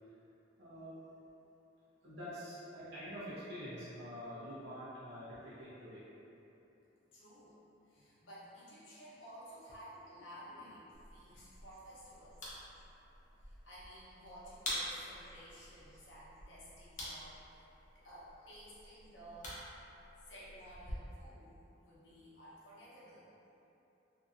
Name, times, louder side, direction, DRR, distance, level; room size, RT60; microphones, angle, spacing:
voice 1, 0.6-1.0 2.0-6.0 10.6-10.8 11.3-11.4 15.9-16.0 18.8-19.0, equal, 70° right, -12 dB, 0.9 m, -47 dB
voice 2, 7.1-7.5 7.9-12.5 13.4-17.4 18.0-19.6 20.2-23.2, equal, 80° left, -8 dB, 0.8 m, -54 dB
sound 1, 10.9-20.9, left 1 dB, 40° left, 0.7 m, -48 dB
2.8 x 2.6 x 2.5 m, 3.0 s
head